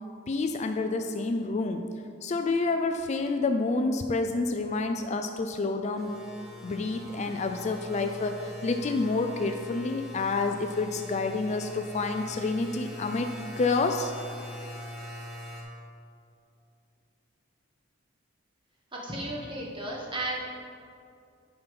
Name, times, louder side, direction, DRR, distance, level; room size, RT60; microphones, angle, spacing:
voice 1, 0.3-1.9 2.2-6.1 6.6-13.3 13.6-14.1, left 3 dB, 35° left, 6 dB, 0.4 m, -28 dB
sound 1, 5.9-15.6, left 1 dB, ahead, 2.2 m, -42 dB
voice 2, 18.9-20.4, right 1 dB, 25° right, -3 dB, 1.5 m, -34 dB
9.1 x 5.8 x 5.3 m, 2.5 s
head